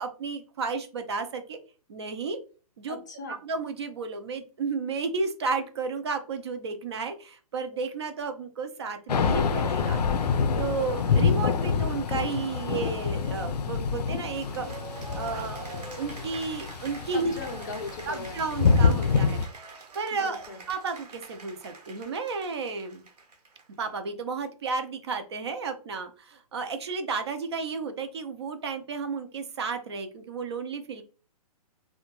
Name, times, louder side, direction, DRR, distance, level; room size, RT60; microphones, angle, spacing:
voice 1, 0.0-1.6 1.9-2.4 2.8-3.0 3.3-14.7 15.1-17.3 18.0-23.0 23.8-31.0, right 4 dB, 45° right, 7 dB, 0.4 m, -33 dB
voice 2, 2.9-3.4 17.1-18.4 20.1-20.6, left 4 dB, 30° left, 4 dB, 0.4 m, -38 dB
Thunder / Rain, 9.1-19.5, left 5 dB, 90° left, 0.4 m, -26 dB
Cheering / Applause, 14.3-23.9, right 4 dB, 90° right, 1.0 m, -45 dB
2.7 x 2.2 x 2.9 m, 0.36 s
hypercardioid pair, 165°, 20 cm